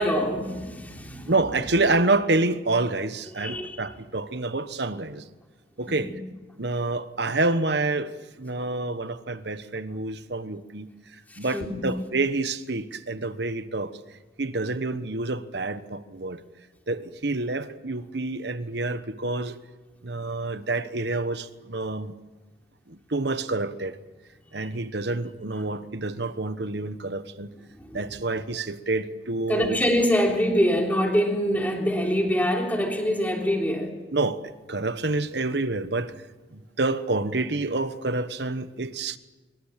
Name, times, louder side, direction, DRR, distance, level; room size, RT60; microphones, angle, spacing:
voice 1, 0.0-1.3 3.4-3.8 5.9-6.1 11.3-11.9 24.6-24.7 27.8-28.0 29.5-33.9, equal, 10° left, 3.4 m, -25 dB
voice 2, 1.3-5.3 5.8-6.1 6.6-14.0 14.4-16.4 16.9-19.6 20.0-22.1 22.9-24.0 24.5-27.5 27.9-29.8 34.1-36.2 36.5-39.2, right 2 dB, 60° right, 1.2 m, -28 dB
25.5 x 23.5 x 7.5 m
head